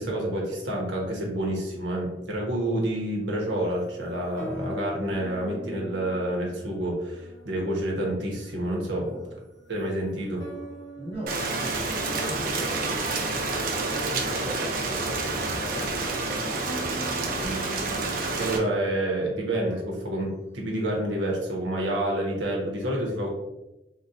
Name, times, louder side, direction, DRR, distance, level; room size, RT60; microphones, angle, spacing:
voice 1, 0.0-9.1 9.7-10.4 18.3-23.3, right 1 dB, 85° right, -2 dB, 0.8 m, -28 dB
sound 1, 3.3-21.3, equal, 20° left, 0.9 m, -44 dB
voice 2, 11.0-18.1, equal, 35° right, -4 dB, 0.8 m, -40 dB
Rain, 11.3-18.6, right 3 dB, 55° right, 0.5 m, -28 dB
3.8 x 2.1 x 2.6 m, 0.97 s
head